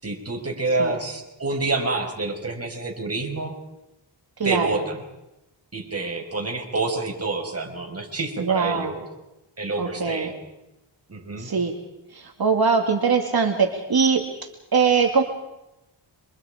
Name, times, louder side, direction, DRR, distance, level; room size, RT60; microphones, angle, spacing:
voice 1, 0.0-3.6 4.4-5.0 5.7-9.1 9.6-10.3 11.1-11.5, right 3 dB, 30° right, 1 dB, 5.6 m, -28 dB
voice 2, 4.4-4.8 8.4-9.0 9.8-10.3 11.4-11.7 12.1-14.2 14.7-15.2, right 5 dB, 50° right, 3 dB, 2.4 m, -22 dB
28.0 x 26.5 x 5.1 m, 0.94 s
wide cardioid pair, 110°, 47 cm